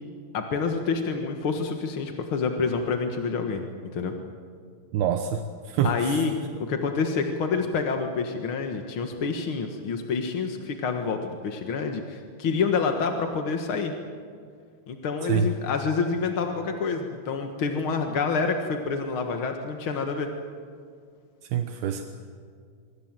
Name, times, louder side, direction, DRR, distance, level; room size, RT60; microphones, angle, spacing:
voice 1, 0.3-3.6 3.9-4.1 5.8-13.9 14.9-20.3, left 5 dB, 55° left, 4 dB, 1.5 m, -27 dB
voice 2, 4.9-6.2 15.3-15.5 21.4-22.0, right 8 dB, 80° right, 6 dB, 3.0 m, -26 dB
25.0 x 24.5 x 7.5 m, 2.2 s
omnidirectional pair, 4.5 m